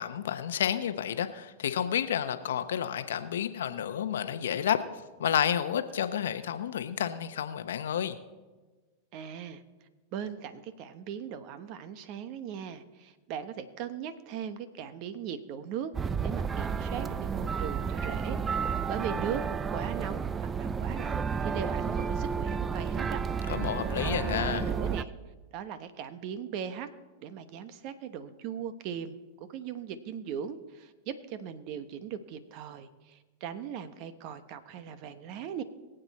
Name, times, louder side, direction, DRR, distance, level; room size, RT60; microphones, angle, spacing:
voice 1, 0.0-4.8 5.2-8.2 23.5-24.7, left 9 dB, 80° left, 10 dB, 0.8 m, -30 dB
voice 2, 9.1-9.6 10.1-15.9 16.2-19.4 19.7-23.2 24.0-25.1 25.5-26.9 27.2-35.6, right 8 dB, 50° right, 12 dB, 1.0 m, -39 dB
sound 1, 15.9-25.0, right 6 dB, 20° right, 0.5 m, -31 dB
22.5 x 7.9 x 4.2 m, 1.3 s
hypercardioid pair, 110°, 0 cm